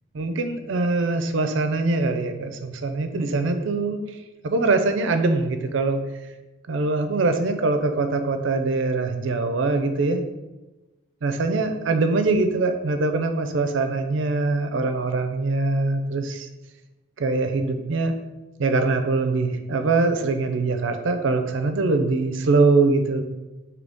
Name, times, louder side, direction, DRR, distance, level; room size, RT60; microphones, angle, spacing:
voice 1, 0.1-4.0 4.4-6.0 6.7-10.2 11.2-16.5 17.2-18.1 18.6-23.2, right 3 dB, 65° right, 7 dB, 0.4 m, -23 dB
3.9 x 2.8 x 3.5 m, 1.1 s
head